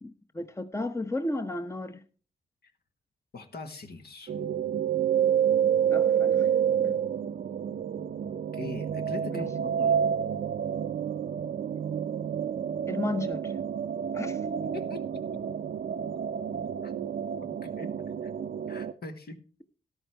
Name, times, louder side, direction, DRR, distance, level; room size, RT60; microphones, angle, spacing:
voice 1, 0.0-2.0 5.9-6.5 6.8-7.0 9.3-9.4 12.9-13.5 14.1-14.4, left 2 dB, 15° left, 0.9 m, -33 dB
voice 2, 3.3-4.4 6.7-6.8 8.5-10.0 14.6-15.4 16.8-16.9 17.4-17.9 18.2-18.3 18.7-19.4, left 3 dB, 65° left, 1.7 m, -42 dB
sound 1, 4.3-18.9, right 8 dB, 60° right, 0.5 m, -29 dB
13.5 x 11.0 x 3.4 m
cardioid pair, 60°, 18 cm